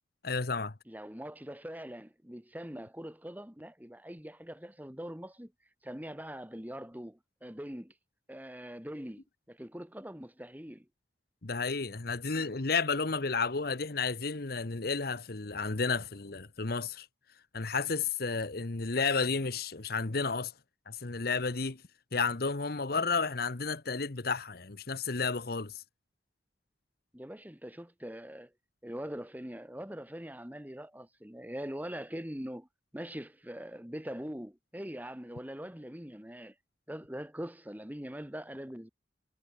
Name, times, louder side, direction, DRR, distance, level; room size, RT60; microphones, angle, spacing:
voice 1, 0.2-0.7 11.4-17.1 17.5-20.5 20.9-21.8 22.1-25.8, left 4 dB, 55° left, 1.1 m, -32 dB
voice 2, 0.9-5.5 5.8-7.9 8.3-10.9 27.1-28.5 28.8-32.7 32.9-36.5 36.9-38.9, equal, 10° right, 2.3 m, -42 dB
head